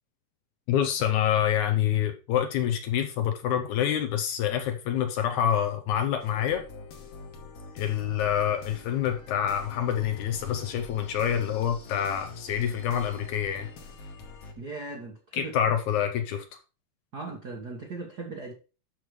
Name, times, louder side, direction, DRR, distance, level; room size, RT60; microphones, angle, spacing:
voice 1, 0.7-6.6 7.8-13.7 15.3-16.4, left 9 dB, 75° left, 1.9 m, -27 dB
sound 1, 6.2-14.5, left 3 dB, 55° left, 2.0 m, -45 dB
voice 2, 14.6-15.7 17.1-18.5, right 3 dB, 65° right, 0.9 m, -38 dB
13.0 x 5.2 x 3.2 m
omnidirectional pair, 3.9 m